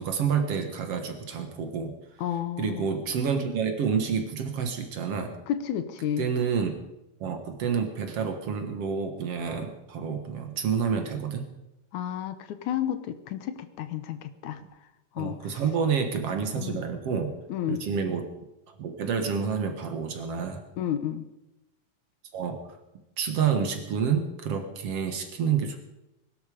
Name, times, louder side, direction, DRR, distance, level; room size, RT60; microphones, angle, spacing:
voice 1, 0.0-2.0 2.6-5.4 6.2-6.8 7.2-11.5 15.2-17.3 17.7-18.3 18.7-20.6 22.3-22.6 23.2-25.8, right 6 dB, 55° right, 6 dB, 2.3 m, -28 dB
voice 2, 2.2-2.9 5.5-6.3 11.9-14.6 15.2-15.4 16.6-16.9 17.5-17.8 20.8-21.3, left 10 dB, 75° left, 10 dB, 2.3 m, -31 dB
21.0 x 12.0 x 5.1 m, 0.93 s
omnidirectional pair, 3.5 m